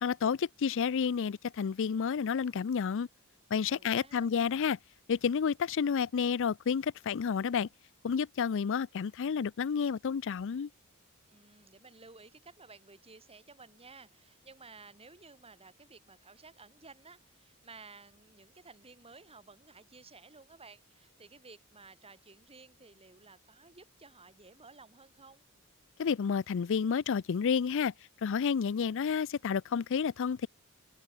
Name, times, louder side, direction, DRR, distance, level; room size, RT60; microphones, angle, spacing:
voice 1, 0.0-3.1 3.5-4.8 5.1-7.7 8.0-10.7 26.0-27.9 28.2-30.5, left 6 dB, 60° left, 0.4 m, -30 dB
voice 2, 3.6-4.3 11.3-25.4, right 4 dB, 30° right, 3.8 m, -55 dB
head